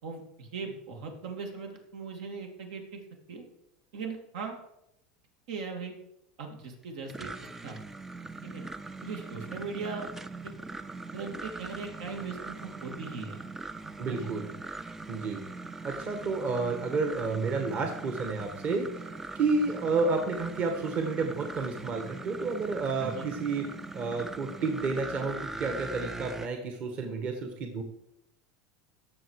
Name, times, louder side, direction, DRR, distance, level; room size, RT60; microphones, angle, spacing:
voice 1, 0.0-3.0 3.3-3.4 3.9-4.6 5.5-5.9 6.4-7.3 7.6-7.8 8.4-8.6 9.0-10.1 10.4-10.5 11.1-13.4 14.1-14.3 23.0-23.3, right 4 dB, 75° right, 3 dB, 2.7 m, -39 dB
sound 1, 6.8-26.5, right 3 dB, 10° right, 0.4 m, -41 dB
voice 2, 14.0-14.5 15.1-15.4 15.8-23.7 23.9-27.8, right 4 dB, 40° right, 5 dB, 1.6 m, -31 dB
17.0 x 6.8 x 4.8 m, 0.83 s
supercardioid pair, 140°, 4 cm